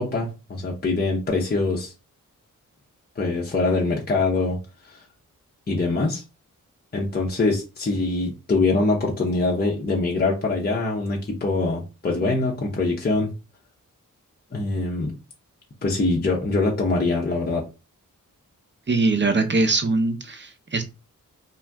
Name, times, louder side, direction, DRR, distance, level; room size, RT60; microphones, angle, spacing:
voice 1, 0.0-1.9 3.2-4.6 4.8-5.0 5.7-6.2 6.9-13.3 14.5-15.1 15.8-17.6, left 3 dB, 30° left, -2 dB, 0.7 m, -23 dB
voice 2, 18.9-20.8, right 3 dB, 35° right, 7 dB, 0.6 m, -22 dB
2.5 x 2.2 x 3.4 m, 0.29 s
cardioid pair, 50°, 34 cm